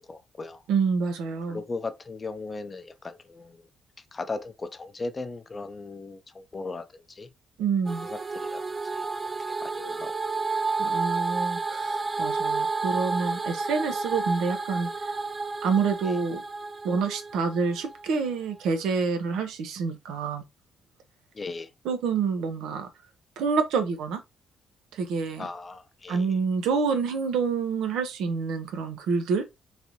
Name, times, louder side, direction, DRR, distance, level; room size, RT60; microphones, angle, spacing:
voice 1, 0.0-0.6 1.5-3.7 4.1-7.3 8.0-9.1 9.4-10.4 16.0-16.2 21.3-21.7 25.4-26.3, left 3 dB, 30° left, 0.5 m, -38 dB
voice 2, 0.7-1.6 7.6-8.1 10.8-14.9 15.6-16.4 16.8-20.4 21.8-22.9 23.4-24.2 24.9-25.5 26.1-29.4, right 5 dB, 85° right, 0.7 m, -27 dB
sound 1, 7.9-18.1, right 3 dB, 30° right, 0.3 m, -31 dB
3.2 x 2.6 x 2.9 m
cardioid pair, 90°, 0 cm